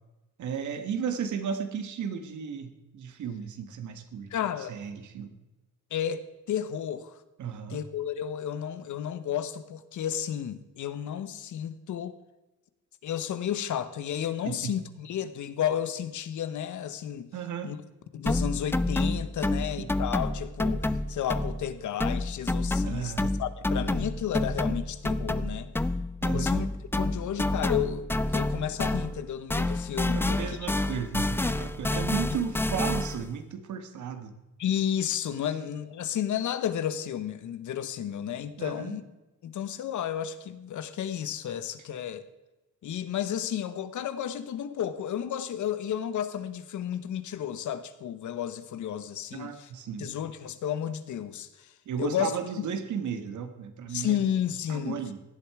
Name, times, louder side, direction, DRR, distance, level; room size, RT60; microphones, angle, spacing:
voice 1, 0.4-5.3 7.4-7.8 14.4-14.8 17.3-17.7 19.5-19.9 22.8-23.3 26.2-26.5 30.1-34.3 38.6-39.0 49.3-50.1 51.8-54.2 54.7-55.2, right 7 dB, 75° right, 9 dB, 1.7 m, -35 dB
voice 2, 4.3-4.7 5.9-7.2 7.7-12.2 13.0-17.3 17.6-17.8 18.1-23.1 23.4-25.7 26.3-26.7 26.9-30.6 34.6-39.0 39.4-42.2 42.8-49.7 50.0-51.7 52.0-52.3 53.9-55.0, left 9 dB, 80° left, 13 dB, 1.2 m, -32 dB
sound 1, 18.3-21.7 22.0-29.2 29.5-33.3, left 2 dB, 10° left, 0.5 m, -29 dB
17.0 x 11.5 x 4.9 m, 1.0 s
wide cardioid pair, 155°, 30 cm